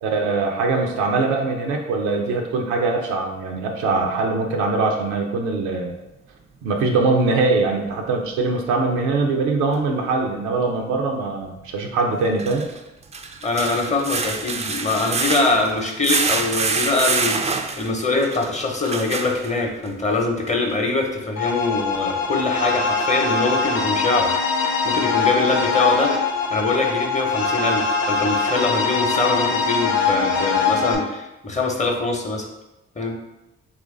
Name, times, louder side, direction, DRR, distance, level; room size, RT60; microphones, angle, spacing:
voice 1, 0.0-5.9 6.6-12.7, right 3 dB, 85° right, 2 dB, 0.5 m, -22 dB
sound 1, 9.7-9.8 12.3-19.9 20.5-20.6 21.0-21.1, right 4 dB, 25° right, 0.3 m, -26 dB
voice 2, 13.4-17.4 17.8-24.3 24.8-26.2 26.5-32.5 33.0-33.2, left 3 dB, 25° left, 2 dB, 0.8 m, -23 dB
sound 2, 21.4-31.0, left 5 dB, 60° left, 0.7 m, -22 dB
3.0 x 2.5 x 3.8 m, 0.96 s
supercardioid pair, 50°, 29 cm